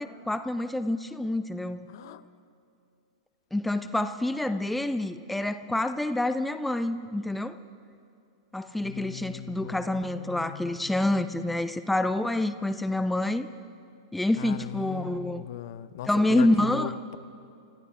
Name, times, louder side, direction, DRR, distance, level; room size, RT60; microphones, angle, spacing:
voice 1, 0.0-1.9 3.5-7.6 8.5-13.5 14.1-15.5 16.1-16.9, left 1 dB, 5° left, 11 dB, 0.5 m, -27 dB
voice 2, 1.9-2.2 8.8-11.6 14.4-17.2, left 12 dB, 55° left, 15 dB, 0.6 m, -39 dB
28.5 x 14.0 x 3.6 m, 2.6 s
figure-of-eight pair, 95°, 2 cm